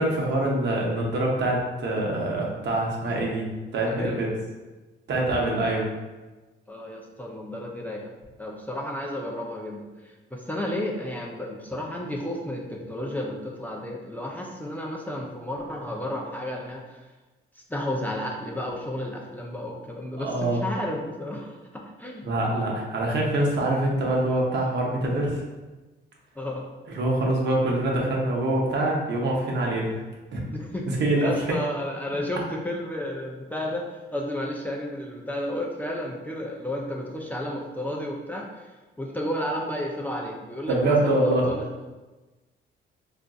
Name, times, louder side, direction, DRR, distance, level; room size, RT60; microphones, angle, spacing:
voice 1, 0.0-3.5 3.7-4.3 5.1-5.9 20.2-20.6 22.2-25.4 26.9-30.0 30.3-30.4 30.9-31.3 40.7-41.5, right 1 dB, 60° right, -2 dB, 0.8 m, -24 dB
voice 2, 3.9-4.2 6.7-8.1 8.4-17.0 17.7-22.3 26.4-26.7 30.5-30.8 31.2-38.7 39.0-41.7, left 1 dB, 10° left, -2 dB, 0.4 m, -32 dB
3.6 x 2.5 x 2.3 m, 1.2 s
cardioid pair, 90°, 20 cm